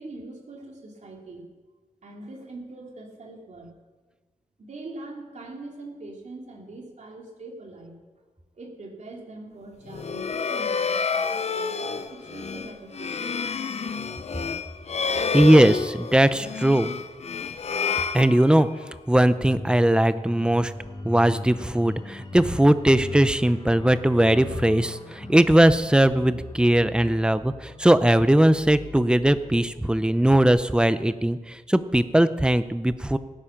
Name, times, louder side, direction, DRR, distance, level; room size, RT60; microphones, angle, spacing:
voice 1, 0.0-1.5 2.0-3.7 4.6-8.0 8.5-11.7 12.1-13.4 13.8-13.9, right 2 dB, 65° right, 0 dB, 2.9 m, -42 dB
sound 1, 9.8-18.9, left 5 dB, 55° left, 0.6 m, -29 dB
voice 2, 15.3-16.9 18.1-18.7 19.1-20.7 21.0-33.2, right 1 dB, 5° right, 13 dB, 0.6 m, -19 dB
sound 2, 19.2-31.5 31.8-32.0, left 3 dB, 35° left, 1.5 m, -40 dB
17.0 x 9.9 x 5.9 m, 1.3 s
wide cardioid pair, 120°, 13 cm